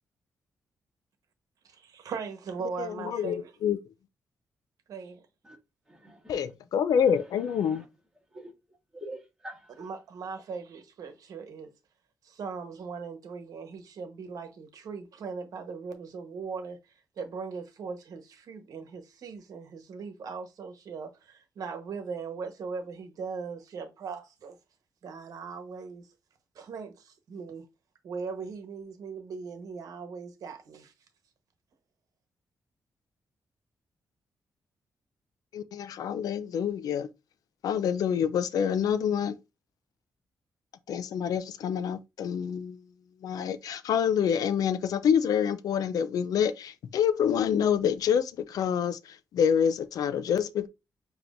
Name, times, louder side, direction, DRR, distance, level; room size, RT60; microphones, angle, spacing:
voice 1, 1.6-3.5 4.9-5.2 9.8-11.7 12.2-24.6 25.0-26.1 26.5-27.7 28.0-30.9, right 5 dB, 70° right, 1.0 m, -39 dB
voice 2, 2.8-3.8 6.3-7.8 35.5-37.1 37.6-39.4 40.9-42.8 43.2-50.7, left 8 dB, 80° left, 0.5 m, -27 dB
voice 3, 5.8-6.4 6.9-7.9 8.3-9.9 10.5-10.6, right 1 dB, 10° right, 1.6 m, -47 dB
6.9 x 3.0 x 2.5 m
wide cardioid pair, 160°, 6 cm